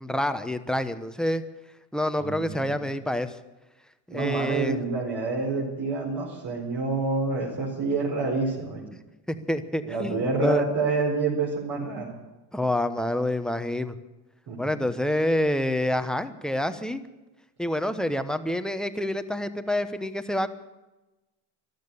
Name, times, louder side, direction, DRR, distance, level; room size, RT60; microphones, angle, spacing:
voice 1, 0.0-1.4 1.9-3.3 4.1-4.8 9.5-10.7 12.5-13.9 14.6-17.0 17.6-20.5, left 1 dB, ahead, 9 dB, 1.0 m, -27 dB
voice 2, 2.2-2.8 4.1-8.8 9.8-12.1 14.5-14.9, right 3 dB, 55° right, -4 dB, 4.7 m, -28 dB
14.0 x 12.0 x 8.6 m, 1.1 s
supercardioid pair, 90°, 49 cm